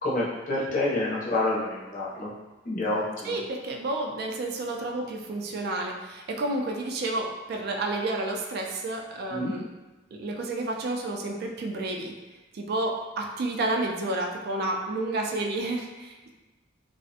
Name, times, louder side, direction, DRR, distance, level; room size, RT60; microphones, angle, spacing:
voice 1, 0.0-2.3 2.6-3.4 9.3-9.5, left 2 dB, 45° left, -5 dB, 0.6 m, -28 dB
voice 2, 3.2-9.6 10.1-12.1 12.5-16.3, right 2 dB, 55° right, 2 dB, 0.3 m, -30 dB
2.4 x 2.0 x 2.7 m, 1.2 s
head